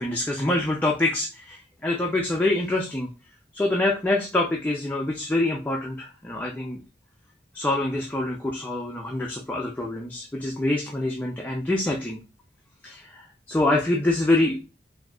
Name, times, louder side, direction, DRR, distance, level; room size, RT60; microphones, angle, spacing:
voice 1, 0.0-3.1 3.5-6.8 7.5-12.2 12.8-14.6, left 2 dB, 10° left, -1 dB, 0.4 m, -25 dB
3.8 x 2.7 x 2.3 m, 0.30 s
head